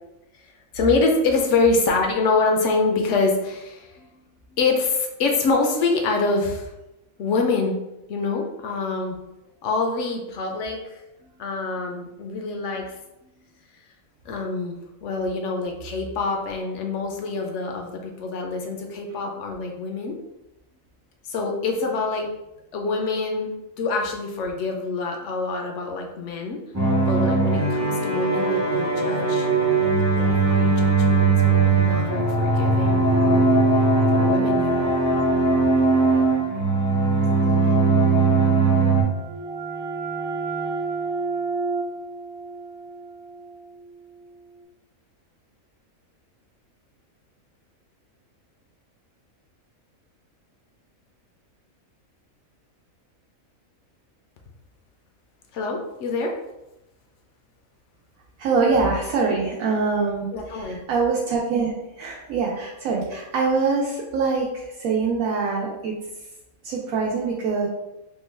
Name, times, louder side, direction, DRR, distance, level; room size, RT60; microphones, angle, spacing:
voice 1, 0.7-4.2 4.5-6.7 7.2-7.8 8.1-9.2 9.6-13.5 14.2-20.2 21.2-22.3 22.7-23.5 23.8-29.5 29.8-33.5 34.1-34.9 55.5-56.3 60.3-60.8, left 3 dB, 70° left, 2 dB, 0.8 m, -26 dB
sound 1, 26.7-39.0, right 3 dB, 30° right, 0.3 m, -19 dB
sound 2, 38.8-44.3, right 4 dB, 55° right, 0.9 m, -31 dB
voice 2, 58.4-65.9 66.6-67.7, right 4 dB, 80° right, -3 dB, 1.0 m, -24 dB
3.7 x 2.2 x 3.2 m, 0.94 s
omnidirectional pair, 1.4 m